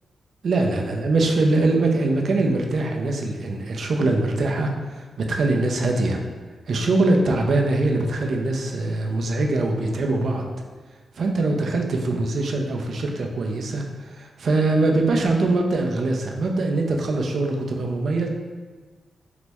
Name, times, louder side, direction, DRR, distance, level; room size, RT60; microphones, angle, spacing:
voice 1, 0.4-6.2 6.7-10.4 11.2-18.3, right 2 dB, 65° right, 2 dB, 0.5 m, -22 dB
3.9 x 3.1 x 3.4 m, 1.4 s
cardioid pair, 90°, 0 cm